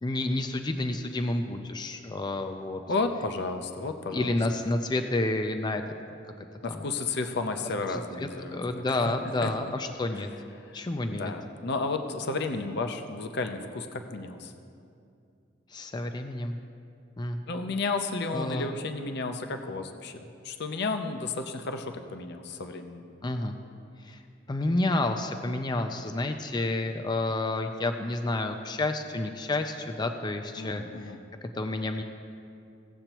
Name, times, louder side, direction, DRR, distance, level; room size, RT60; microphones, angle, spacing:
voice 1, 0.0-2.8 4.1-5.8 6.7-6.8 7.9-10.3 10.7-11.3 15.7-16.6 17.2-17.4 18.3-18.7 23.2-23.5 24.0-24.2 24.5-31.1 31.5-32.0, left 2 dB, 25° left, 6 dB, 0.4 m, -30 dB
voice 2, 2.9-4.4 6.6-9.0 9.4-9.5 10.6-14.5 17.5-20.2 20.4-23.1 30.6-31.2, left 3 dB, 60° left, 6 dB, 0.6 m, -32 dB
16.5 x 7.9 x 3.0 m, 2.5 s
head